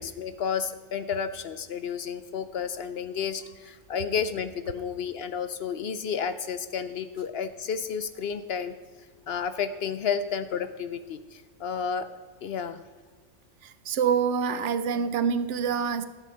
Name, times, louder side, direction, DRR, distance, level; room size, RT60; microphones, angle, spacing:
voice 1, 0.0-8.7 9.3-12.1 12.4-12.8, left 7 dB, 60° left, 12 dB, 0.7 m, -31 dB
voice 2, 13.6-16.1, right 6 dB, 70° right, 12 dB, 0.9 m, -26 dB
13.0 x 8.4 x 5.4 m, 1.5 s
omnidirectional pair, 1.3 m